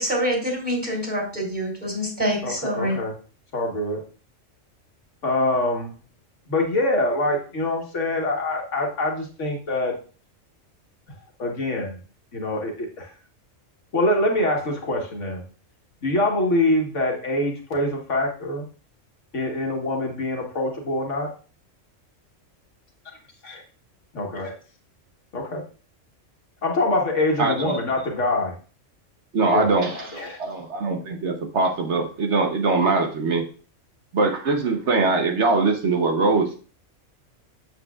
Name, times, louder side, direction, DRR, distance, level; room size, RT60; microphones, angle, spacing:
voice 1, 0.0-3.0, equal, 10° left, -1 dB, 3.2 m, -26 dB
voice 2, 2.4-3.1 3.5-4.0 5.2-5.9 6.5-9.9 11.4-11.9 12.3-13.1 13.9-15.4 16.0-18.6 19.3-21.3 23.4-23.6 24.1-24.5 25.3-25.6 26.6-28.5 29.5-30.4, left 1 dB, 65° left, 1 dB, 1.6 m, -24 dB
voice 3, 27.4-27.8 29.3-33.5 34.1-36.6, right 3 dB, 60° right, 3 dB, 1.2 m, -22 dB
8.2 x 7.1 x 2.4 m, 0.38 s
omnidirectional pair, 1.3 m